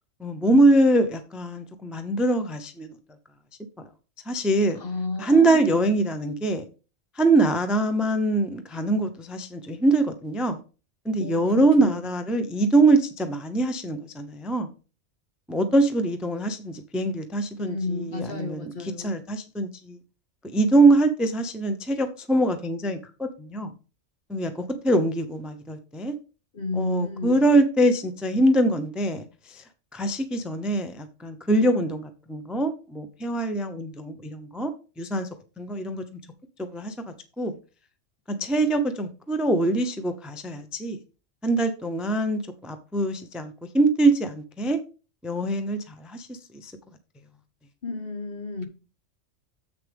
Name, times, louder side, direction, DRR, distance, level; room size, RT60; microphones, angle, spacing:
voice 1, 0.2-2.9 4.3-4.8 5.2-6.6 7.2-10.6 11.0-14.7 15.5-20.0 20.5-23.7 24.3-26.1 26.8-29.6 29.9-34.7 35.0-35.3 35.6-36.0 36.6-36.9 37.4-37.6 38.3-41.0 41.4-44.8 45.2-46.7, right 2 dB, ahead, 0.6 m, -23 dB
voice 2, 4.8-5.8 11.2-12.1 17.6-19.2 26.5-27.4 47.8-48.7, left 3 dB, 50° left, 1.5 m, -32 dB
7.8 x 6.5 x 3.5 m
omnidirectional pair, 1.2 m